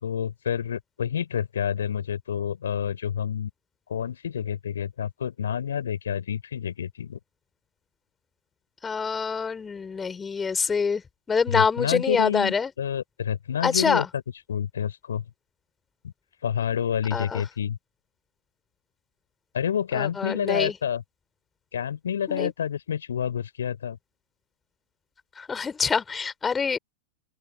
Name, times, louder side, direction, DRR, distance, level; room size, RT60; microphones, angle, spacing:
voice 1, 0.0-3.5 3.9-7.2 11.5-14.0 14.5-15.2 16.0-16.1 16.4-17.8 19.5-21.0 21.7-24.0, left 8 dB, 65° left, 4.0 m, -28 dB
voice 2, 8.8-11.0 11.3-12.7 13.6-14.1 17.1-17.4 19.9-20.8 22.3-22.5 25.4-26.8, left 5 dB, 15° left, 4.7 m, -25 dB
open air
figure-of-eight pair, 90°, 0 cm